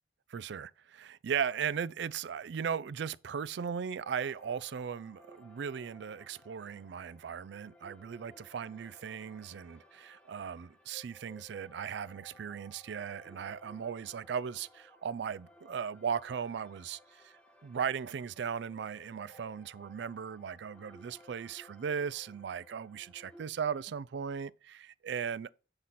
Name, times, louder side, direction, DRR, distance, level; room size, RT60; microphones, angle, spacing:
voice 1, 0.3-17.3 17.6-25.5, right 7 dB, 65° right, 0.3 m, -37 dB
sound 1, 4.0-23.4, left 1 dB, 5° left, 0.8 m, -59 dB
7.8 x 4.1 x 5.8 m
head